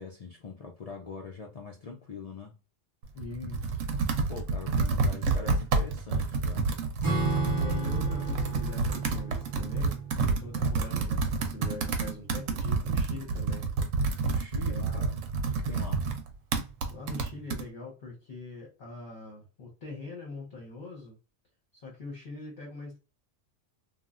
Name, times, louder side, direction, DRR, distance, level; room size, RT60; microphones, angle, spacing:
voice 1, 0.0-2.6 4.3-6.7 14.2-16.0, left 4 dB, 70° left, 0.3 m, -43 dB
Computer keyboard, 3.0-17.6, right 4 dB, 85° right, 1.0 m, -29 dB
voice 2, 3.1-3.8 7.4-10.0 10.2-13.7 14.6-15.1 16.9-21.2 21.7-23.0, left 3 dB, 45° left, 0.9 m, -43 dB
Acoustic guitar / Strum, 7.0-11.8, right 3 dB, 20° right, 0.6 m, -34 dB
3.1 x 2.3 x 2.4 m
omnidirectional pair, 1.3 m